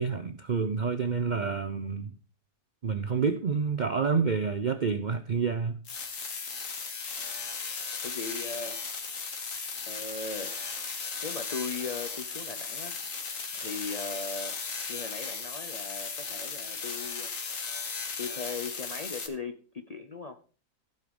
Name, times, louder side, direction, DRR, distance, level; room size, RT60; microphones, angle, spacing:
voice 1, 0.0-2.1 2.8-5.8, right 5 dB, 70° right, 0.4 m, -28 dB
voice 2, 3.1-3.4 8.0-8.8 9.9-10.6 11.2-13.0 13.6-14.6 14.9-17.3 18.2-20.4, left 4 dB, 80° left, 0.3 m, -38 dB
sound 1, 5.8-19.3, left 5 dB, 55° left, 1.7 m, -36 dB
15.0 x 5.6 x 5.2 m
omnidirectional pair, 1.7 m